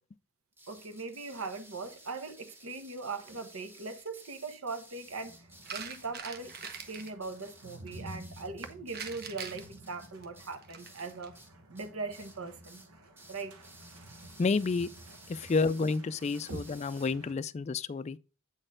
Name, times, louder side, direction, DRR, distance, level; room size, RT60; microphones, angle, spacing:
sound 1, 0.6-11.5 11.8-12.4 12.6-12.9 13.2-17.1, right 1 dB, 10° right, 1.6 m, -55 dB
voice 1, 0.7-5.4 5.7-6.5 6.9-11.3 11.7-12.8 13.3-13.5 16.5-16.6, right 3 dB, 70° right, 1.0 m, -40 dB
sound 2, 5.0-17.3, right 1 dB, 90° right, 1.4 m, -52 dB
sound 3, 5.6-7.1 8.9-11.3 12.5-12.7, right 7 dB, 45° right, 0.9 m, -43 dB
voice 2, 14.4-14.9 15.5-18.2, left 4 dB, 30° left, 0.3 m, -29 dB
8.8 x 4.3 x 3.7 m
head